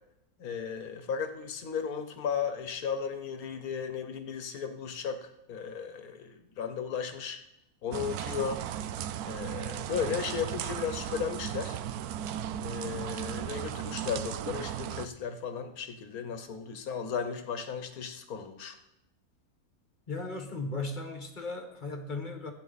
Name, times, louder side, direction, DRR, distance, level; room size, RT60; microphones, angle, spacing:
voice 1, 0.4-7.4 7.8-8.6 9.2-11.8 12.6-18.8, left 7 dB, 75° left, 8 dB, 1.5 m, -35 dB
sound 1, 7.9-15.1, right 10 dB, 80° right, 1.1 m, -36 dB
voice 2, 20.1-22.5, left 3 dB, 35° left, 5 dB, 1.4 m, -36 dB
15.5 x 8.3 x 4.1 m, 0.88 s
omnidirectional pair, 1.6 m